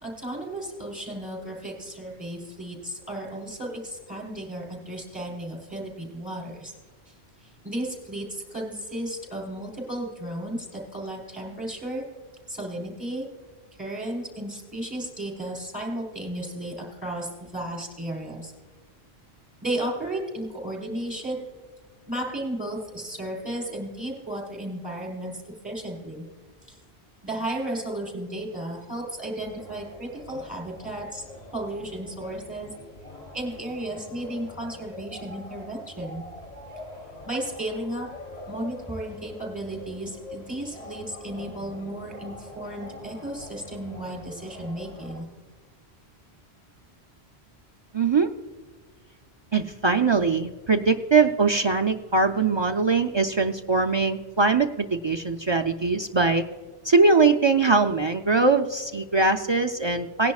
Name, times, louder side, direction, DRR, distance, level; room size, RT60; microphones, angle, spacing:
voice 1, 0.0-6.7 7.1-7.2 7.4-12.0 12.5-13.3 13.8-18.5 19.6-21.4 22.1-26.2 26.7-26.8 27.2-31.2 31.5-32.7 33.3-36.2 37.3-38.1 38.5-45.3, right 1 dB, 5° right, -4 dB, 4.1 m, -34 dB
sound 1, 29.4-45.2, left 2 dB, 35° left, 1.6 m, -44 dB
voice 2, 47.9-48.3 49.5-56.5 56.8-60.3, right 4 dB, 50° right, 4 dB, 0.3 m, -22 dB
19.0 x 10.5 x 2.4 m, 1.4 s
omnidirectional pair, 1.1 m